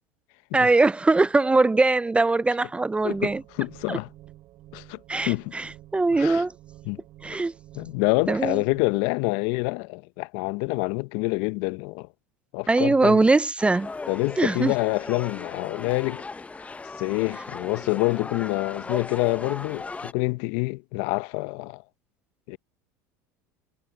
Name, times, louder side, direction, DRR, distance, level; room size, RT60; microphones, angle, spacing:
voice 1, 0.5-3.4 3.9-4.0 5.1-6.5 7.2-7.5 8.3-8.6 12.7-13.9 14.4-14.7, right 3 dB, 10° right, 0.4 m, -21 dB
voice 2, 3.0-4.1 4.7-5.5 6.1-6.4 6.9-7.0 7.7-12.1 12.5-13.2 14.1-16.2 17.0-21.8 22.5-22.6, left 25 dB, 70° left, 0.8 m, -27 dB
sound 1, 3.0-9.0, right 15 dB, 55° right, 2.8 m, -49 dB
sound 2, 13.6-20.1, left 3 dB, 15° left, 0.8 m, -37 dB
hypercardioid pair, 90°, 9 cm